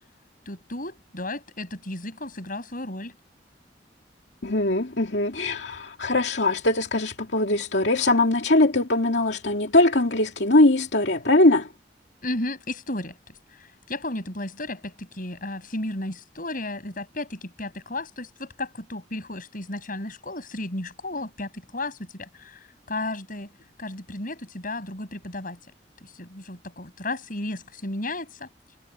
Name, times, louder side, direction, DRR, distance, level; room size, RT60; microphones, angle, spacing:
voice 1, 0.5-3.2 12.2-13.2 13.5-22.6 22.9-23.5 23.8-25.6 26.0-28.5, left 2 dB, 50° left, 7.0 m, -34 dB
voice 2, 4.4-11.7, left 2 dB, 80° left, 2.5 m, -21 dB
head